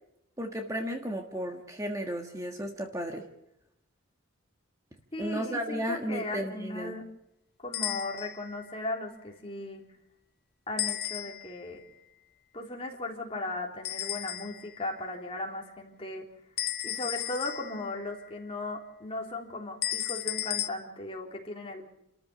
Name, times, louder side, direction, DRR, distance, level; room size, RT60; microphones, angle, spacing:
voice 1, 0.4-3.3 5.2-6.9, equal, 15° right, 3 dB, 1.6 m, -34 dB
voice 2, 5.1-7.0 7.6-9.8 10.7-11.8 12.5-16.3 16.8-21.8, left 2 dB, 25° left, 0 dB, 3.6 m, -37 dB
sound 1, 7.7-8.5 10.8-11.7 13.8-14.8 16.6-18.0 19.8-20.7, left 13 dB, 50° left, 0.8 m, -34 dB
28.5 x 14.0 x 6.8 m, 0.84 s
head